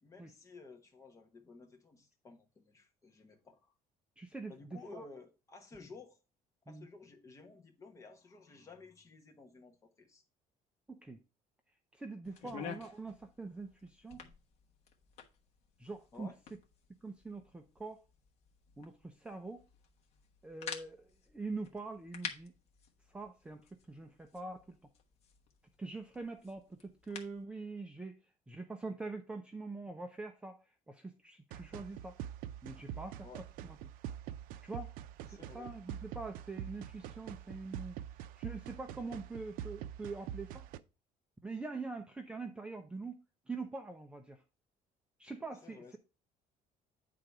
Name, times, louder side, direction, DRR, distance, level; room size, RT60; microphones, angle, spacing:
voice 1, 0.0-3.7 4.5-6.2 6.7-10.2 12.5-12.7 16.1-16.4 33.2-33.4 35.3-35.7 45.6-46.0, left 4 dB, 20° left, 1.1 m, -54 dB
voice 2, 4.2-5.0 5.8-5.9 6.7-6.9 10.9-11.2 11.9-14.2 15.8-16.3 17.0-18.0 18.8-19.6 20.4-22.5 23.1-24.8 25.8-28.2 28.5-30.6 30.9-32.2 32.6-33.3 33.6-33.8 34.6-34.9 35.3-38.0 38.4-40.6 41.4-43.2 43.5-44.4 45.2-45.8, right 3 dB, 10° right, 0.5 m, -44 dB
sound 1, 12.2-27.5, left 7 dB, 50° left, 1.2 m, -51 dB
sound 2, 31.5-40.8, right 11 dB, 80° right, 0.5 m, -45 dB
9.3 x 3.9 x 4.6 m
cardioid pair, 175°, 14 cm